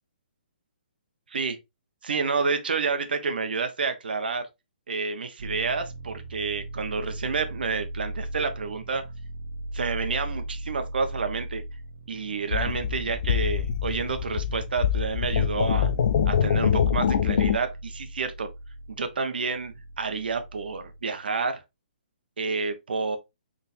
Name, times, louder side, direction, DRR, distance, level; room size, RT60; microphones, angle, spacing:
voice 1, 1.3-1.6 2.0-4.5 4.9-9.0 9.7-11.6 12.1-15.9 16.3-18.5 18.9-21.6 22.4-23.2, right 4 dB, 80° right, 1.0 m, -29 dB
sound 1, 5.4-21.0, right 1 dB, 60° right, 0.7 m, -39 dB
sound 2, 12.5-17.6, left 8 dB, 60° left, 0.5 m, -24 dB
4.2 x 3.6 x 2.6 m
hypercardioid pair, 155°, 5 cm